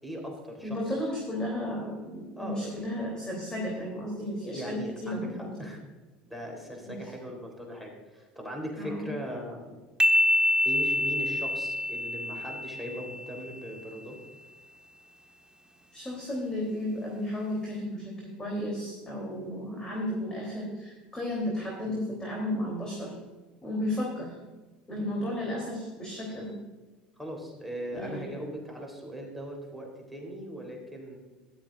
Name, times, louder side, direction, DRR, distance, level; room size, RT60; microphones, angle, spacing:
voice 1, 0.0-1.0 2.4-2.8 4.5-5.8 6.2-9.8 10.6-14.2 21.8-22.0 26.3-26.5 27.2-31.2, equal, ahead, -1 dB, 3.6 m, -39 dB
voice 2, 0.6-5.7 6.9-7.1 8.8-9.1 15.9-23.2 23.6-24.3 24.9-26.5 27.9-28.3, left 1 dB, 20° left, -2 dB, 3.2 m, -33 dB
sound 1, 10.0-13.5, left 1 dB, 20° right, 1.1 m, -26 dB
13.5 x 12.0 x 2.5 m, 1.2 s
hypercardioid pair, 80°, 4 cm